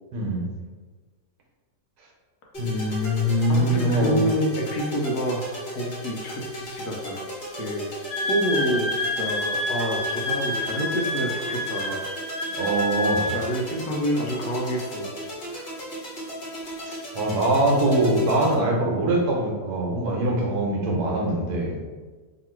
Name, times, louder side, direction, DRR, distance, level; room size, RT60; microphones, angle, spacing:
voice 1, 0.1-0.5 2.6-4.3 12.5-13.4 16.8-21.8, right 1 dB, 70° right, -2 dB, 1.3 m, -23 dB
sound 1, 2.5-18.5, equal, 30° left, 1.2 m, -37 dB
voice 2, 3.5-7.2 7.6-7.9 8.3-12.1 13.3-15.1 15.5-15.6, equal, 70° left, -1 dB, 1.2 m, -28 dB
Wind instrument woodwind instrument, 8.1-13.4, left 1 dB, 55° left, 1.4 m, -28 dB
3.0 x 2.9 x 4.4 m, 1.4 s
omnidirectional pair, 1.8 m